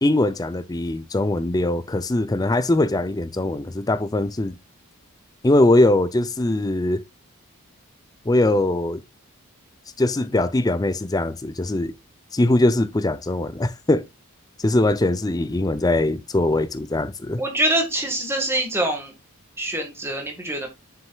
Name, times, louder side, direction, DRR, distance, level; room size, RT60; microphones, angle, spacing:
voice 1, 0.0-4.6 5.4-7.0 8.3-9.0 10.0-11.9 12.3-14.0 14.6-17.4, left 2 dB, 15° left, 0.4 m, -21 dB
voice 2, 17.4-19.1 19.6-20.7, right 1 dB, 10° right, 1.6 m, -24 dB
7.3 x 6.4 x 2.3 m
head